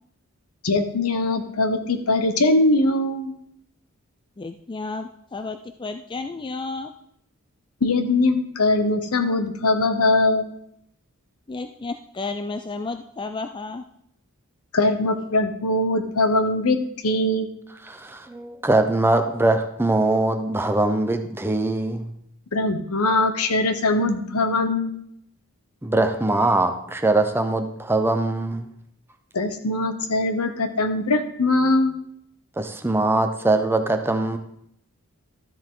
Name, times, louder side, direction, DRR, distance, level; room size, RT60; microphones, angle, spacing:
voice 1, 0.6-3.3 7.8-10.5 14.7-17.5 22.5-25.0 29.3-31.9, left 2 dB, 80° left, 8 dB, 1.1 m, -21 dB
voice 2, 4.4-6.9 11.5-13.8, left 3 dB, 20° left, 8 dB, 0.3 m, -32 dB
voice 3, 17.9-22.1 24.0-24.1 25.8-28.7 32.6-34.4, right 2 dB, 10° right, 7 dB, 0.7 m, -22 dB
13.0 x 7.6 x 3.8 m, 0.72 s
head